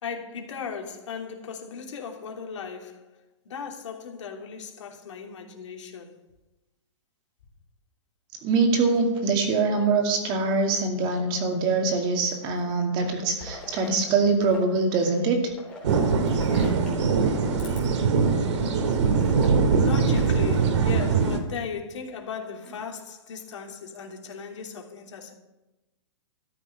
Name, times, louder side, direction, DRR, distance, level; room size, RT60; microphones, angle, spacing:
voice 1, 0.0-3.2 3.4-6.2 19.8-25.3, left 6 dB, 70° left, 3.1 m, -37 dB
voice 2, 8.4-15.5, right 4 dB, 30° right, 2.4 m, -23 dB
sound 1, 12.0-12.7 13.0-14.7 14.9-17.0 17.5-17.8 18.3-18.4 18.8-21.6 22.4-23.0, left 2 dB, 5° left, 3.4 m, -46 dB
sound 2, 15.8-21.4, right 5 dB, 65° right, 2.2 m, -22 dB
14.0 x 7.0 x 9.8 m
hypercardioid pair, 155°, 16 cm